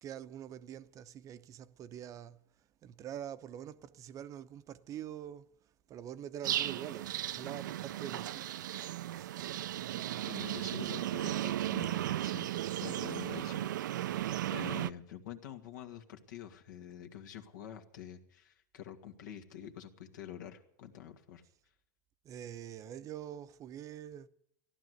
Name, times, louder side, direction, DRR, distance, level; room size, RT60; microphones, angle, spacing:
voice 1, 0.0-2.4 2.8-5.5 5.9-8.5 22.2-24.3, right 10 dB, 35° right, 0.7 m, -45 dB
sound 1, 6.4-14.9, right 13 dB, 80° right, 0.5 m, -35 dB
voice 2, 9.9-12.5 12.8-14.2 14.5-21.4, left 10 dB, 80° left, 2.0 m, -47 dB
15.0 x 11.5 x 7.9 m
hypercardioid pair, 120°, 10 cm